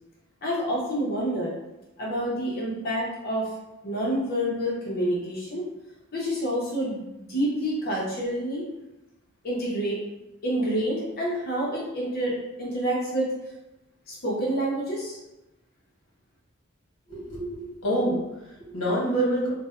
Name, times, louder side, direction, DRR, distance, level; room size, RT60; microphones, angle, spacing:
voice 1, 0.4-1.5 2.0-3.5 3.8-5.6 6.1-8.6 9.4-10.0 10.4-13.3 14.1-15.2, right 1 dB, 45° left, -5 dB, 0.8 m, -28 dB
voice 2, 17.1-19.5, right 1 dB, 65° left, -5 dB, 1.2 m, -27 dB
2.5 x 2.1 x 3.6 m, 0.96 s
head